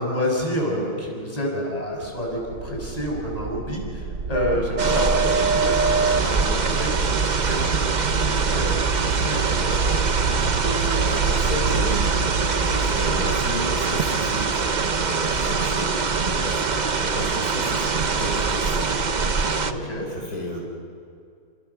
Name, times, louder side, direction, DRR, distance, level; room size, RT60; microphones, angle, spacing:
voice 1, 0.0-10.0 19.6-20.1, left 1 dB, 20° left, 0 dB, 6.2 m, -29 dB
sound 1, 2.4-16.0, right 4 dB, 55° right, 1.5 m, -26 dB
sound 2, 4.8-19.7, right 5 dB, 35° right, 0.8 m, -24 dB
voice 2, 10.3-12.1 12.5-14.7 15.1-18.9 19.5-20.6, equal, 60° left, -2 dB, 4.6 m, -33 dB
29.0 x 26.5 x 7.0 m, 2.4 s
omnidirectional pair, 1.7 m